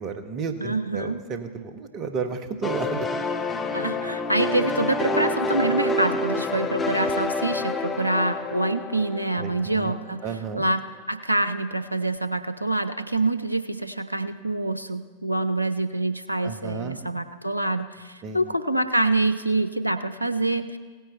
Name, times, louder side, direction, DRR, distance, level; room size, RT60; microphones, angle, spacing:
voice 1, 0.0-3.1 9.4-9.9 10.2-10.7 16.4-17.0 18.2-18.4, right 5 dB, 35° right, 8 dB, 1.1 m, -32 dB
voice 2, 0.6-1.2 3.7-20.8, right 2 dB, 90° right, 11 dB, 0.6 m, -26 dB
sound 1, 2.6-10.1, left 2 dB, 15° left, 1.0 m, -28 dB
16.5 x 9.3 x 4.3 m, 1.5 s
figure-of-eight pair, 90°, 0 cm